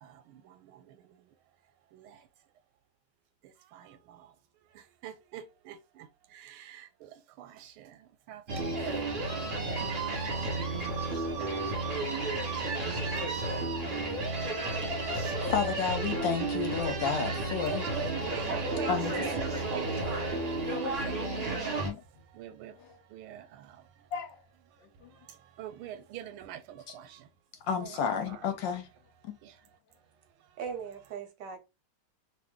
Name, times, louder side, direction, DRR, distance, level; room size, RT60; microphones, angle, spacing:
voice 1, 0.0-1.3 1.9-2.3 3.4-4.3 4.7-8.8 9.2-11.3 11.9-12.5 13.2-13.5 17.6-20.0 20.7-24.1 24.7-24.8 25.1-27.3 27.8-28.5 29.4-29.6, right 10 dB, 85° right, 1.5 m, -45 dB
sound 1, 8.5-21.9, right 2 dB, 45° right, 0.9 m, -32 dB
voice 2, 14.9-17.9 18.9-19.1 21.8-22.0 24.1-24.3 25.0-25.1 27.7-28.9 29.2-29.4, left 7 dB, 70° left, 1.3 m, -32 dB
voice 3, 18.7-20.3 30.6-31.6, right 7 dB, 70° right, 1.1 m, -40 dB
3.0 x 2.7 x 3.5 m
omnidirectional pair, 2.3 m